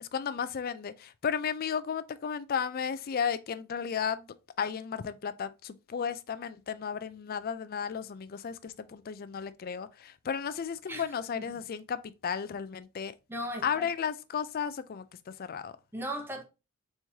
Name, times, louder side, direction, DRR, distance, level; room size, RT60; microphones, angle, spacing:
voice 1, 0.0-4.3 4.6-13.1 13.6-15.8, left 7 dB, 45° left, 0.4 m, -34 dB
voice 2, 13.3-13.9 15.9-16.4, equal, 10° right, 0.8 m, -36 dB
4.2 x 3.1 x 3.4 m
head